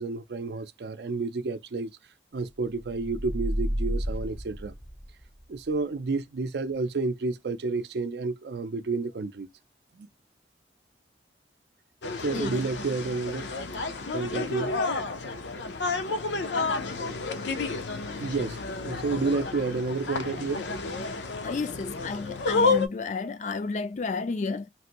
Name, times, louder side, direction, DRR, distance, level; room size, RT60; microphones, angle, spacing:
voice 1, 0.0-1.9 2.3-4.7 5.5-9.5 9.9-10.1 12.2-13.5 13.8-14.8 17.1-17.2 17.7-17.9 18.2-20.7, right 3 dB, 70° right, 0.4 m, -30 dB
sound 1, 2.8-5.4, equal, 10° right, 0.5 m, -31 dB
sound 2, 12.0-22.9, left 3 dB, 90° left, 0.6 m, -30 dB
voice 2, 12.3-12.7 21.4-24.7, left 4 dB, 40° left, 0.3 m, -31 dB
3.2 x 2.6 x 2.9 m
head